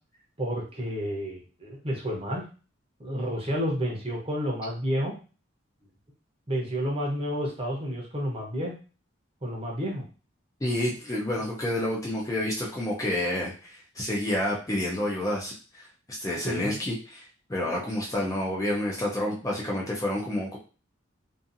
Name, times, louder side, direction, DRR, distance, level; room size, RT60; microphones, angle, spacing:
voice 1, 0.4-2.4 3.0-5.1 6.5-8.7 9.4-10.0 16.4-16.7, equal, 30° right, -1 dB, 0.8 m, -30 dB
voice 2, 10.6-20.6, left 1 dB, 15° left, -3 dB, 0.4 m, -29 dB
2.6 x 2.5 x 2.5 m, 0.35 s
head